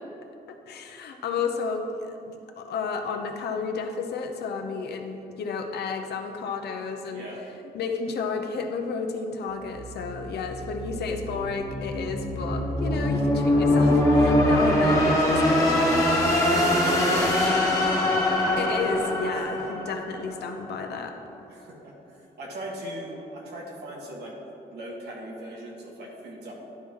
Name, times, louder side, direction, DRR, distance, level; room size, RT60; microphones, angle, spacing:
voice 1, 0.5-7.2 7.7-15.8 18.6-21.2, left 5 dB, 90° left, 5 dB, 0.7 m, -32 dB
sound 1, 9.5-20.6, left 1 dB, 20° left, 1.2 m, -23 dB
voice 2, 14.5-14.9 16.4-17.6 19.3-19.7 21.5-24.3 24.7-26.5, right 1 dB, 90° right, -3 dB, 1.7 m, -37 dB
11.5 x 4.5 x 3.7 m, 2.9 s
wide cardioid pair, 150°, 16 cm